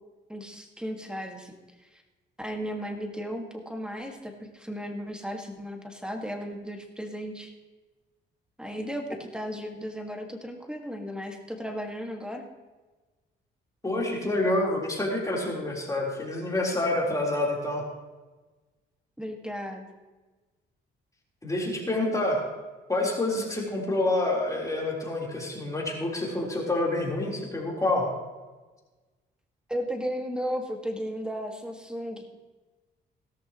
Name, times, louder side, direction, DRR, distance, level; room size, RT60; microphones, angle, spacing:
voice 1, 0.3-1.5 2.4-7.5 8.6-12.4 19.2-19.9 29.7-32.3, equal, 5° right, 3 dB, 1.8 m, -35 dB
voice 2, 13.8-17.8 21.4-22.4 22.9-28.1, left 2 dB, 15° left, -3 dB, 3.9 m, -27 dB
16.5 x 13.5 x 3.0 m, 1.2 s
cardioid pair, 90°, 20 cm